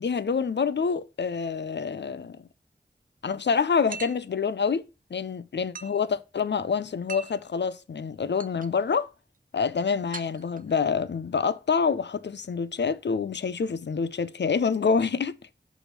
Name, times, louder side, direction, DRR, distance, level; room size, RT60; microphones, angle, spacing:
voice 1, 0.0-2.4 3.2-9.1 9.5-15.3, left 5 dB, 85° left, 0.5 m, -27 dB
sound 1, 3.9-4.3 5.7-6.0 7.1-7.4 8.0-8.1 8.4-8.7 10.1-10.9, right 4 dB, 50° right, 0.6 m, -40 dB
6.1 x 3.5 x 5.9 m
wide cardioid pair, 50°, 18 cm